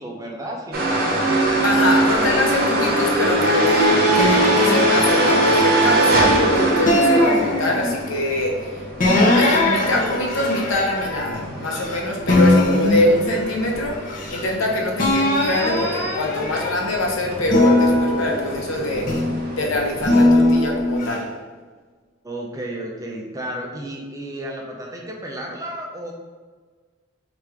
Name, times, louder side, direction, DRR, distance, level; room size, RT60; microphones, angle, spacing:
voice 1, 0.0-1.4 1.7-2.1 22.2-26.1, right 1 dB, 15° right, -1 dB, 0.4 m, -33 dB
sound 1, 0.7-20.2, right 1 dB, 50° right, 0.8 m, -23 dB
voice 2, 1.6-8.6 9.0-19.1 19.5-21.3, left 1 dB, 85° left, 0 dB, 0.7 m, -23 dB
sound 2, 4.2-6.3 6.9-8.2 9.0-11.9 12.3-14.6 15.0-17.0 17.5-19.4 20.0-21.2, left 1 dB, 40° left, 0.6 m, -21 dB
3.4 x 2.5 x 4.5 m, 1.4 s
head